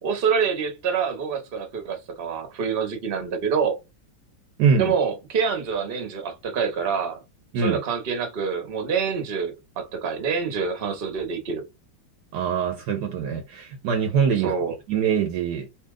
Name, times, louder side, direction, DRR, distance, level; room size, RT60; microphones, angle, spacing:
voice 1, 0.0-3.7 4.7-7.2 7.6-11.6 14.4-14.7, right 6 dB, 45° right, 0.7 m, -26 dB
voice 2, 4.6-4.9 7.5-7.8 12.3-14.5 14.9-15.7, right 7 dB, 70° right, 1.1 m, -23 dB
2.9 x 2.8 x 3.6 m
omnidirectional pair, 2.1 m